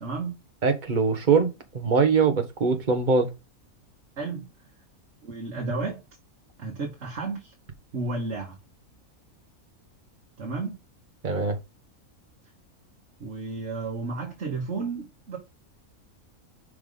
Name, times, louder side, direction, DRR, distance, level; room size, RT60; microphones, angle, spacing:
voice 1, 0.0-0.4 4.2-4.5 5.2-6.0 6.6-7.5 7.9-8.6 10.4-10.8 13.2-15.4, right 3 dB, 55° right, 1.9 m, -32 dB
voice 2, 0.6-3.3 11.2-11.6, right 5 dB, 35° right, 1.4 m, -22 dB
5.8 x 4.9 x 5.4 m
omnidirectional pair, 1.5 m